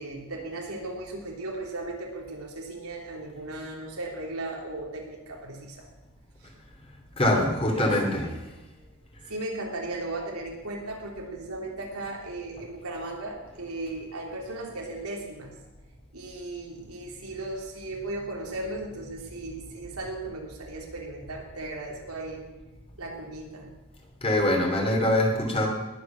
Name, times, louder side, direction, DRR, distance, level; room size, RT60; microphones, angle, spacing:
voice 1, 0.0-5.9 6.4-6.5 7.6-8.5 9.3-15.5 16.1-22.5 23.0-23.7, right 2 dB, 90° right, 0 dB, 3.4 m, -36 dB
voice 2, 7.2-8.3 24.2-25.7, left 1 dB, 25° left, 1 dB, 2.9 m, -23 dB
19.5 x 8.3 x 6.1 m, 1.1 s
head